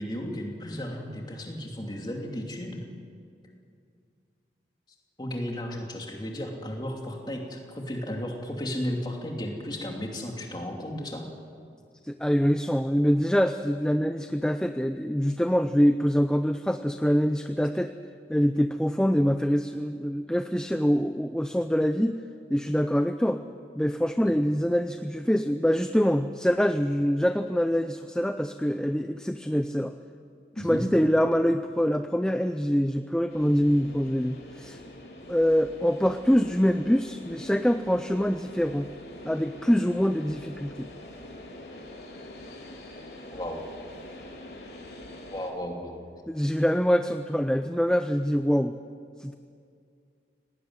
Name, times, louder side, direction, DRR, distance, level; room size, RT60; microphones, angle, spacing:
voice 1, 0.0-2.8 5.2-11.3 24.2-24.3 30.5-30.8 43.3-43.6 45.3-46.0, equal, 25° left, 1 dB, 2.9 m, -34 dB
voice 2, 12.0-17.9 18.3-22.2 22.5-23.4 23.8-29.9 30.6-34.8 35.3-38.9 39.2-40.9 46.3-48.7 49.2-49.3, equal, 5° left, 8 dB, 0.5 m, -24 dB
sound 1, 33.3-45.5, left 1 dB, 70° left, 3.8 m, -45 dB
18.5 x 17.5 x 9.6 m, 2.3 s
head